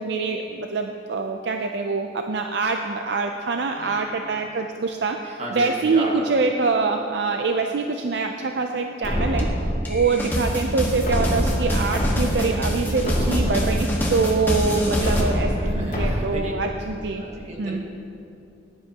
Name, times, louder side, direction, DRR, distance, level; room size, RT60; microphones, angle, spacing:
voice 1, 0.0-9.5 9.9-17.2 17.6-17.8, right 4 dB, 65° right, 4 dB, 0.5 m, -25 dB
voice 2, 3.8-4.1 4.7-4.9 5.4-6.5 12.9-13.7 14.1-14.2 14.6-16.5 17.2-17.7, right 1 dB, 40° right, -2 dB, 1.8 m, -34 dB
sound 1, 9.0-10.1 11.0-12.1 12.5-12.6 13.0-14.1 15.0-16.1, equal, 45° left, 2.2 m, -25 dB
sound 2, 9.4-9.5 9.9-15.2, equal, 10° left, 1.5 m, -25 dB
16.5 x 10.5 x 2.9 m, 2.6 s
head